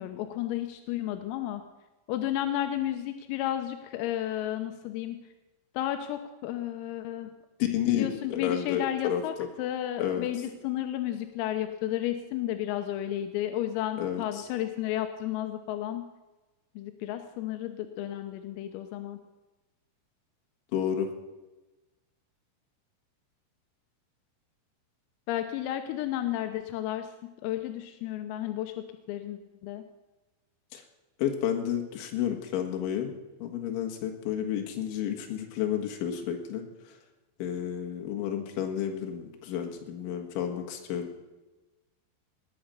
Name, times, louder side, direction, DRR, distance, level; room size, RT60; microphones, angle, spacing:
voice 1, 0.0-1.6 2.1-5.2 5.8-7.3 7.9-16.0 16.8-19.2 25.3-27.1 27.4-29.8, left 12 dB, 85° left, 7 dB, 3.5 m, -32 dB
voice 2, 7.7-9.5 10.0-10.3 14.0-14.2 20.7-21.1 30.7-30.8 31.2-33.1 33.4-36.6 37.4-41.1, left 9 dB, 70° left, 3 dB, 3.9 m, -31 dB
19.5 x 9.1 x 6.7 m, 1.1 s
omnidirectional pair, 5.9 m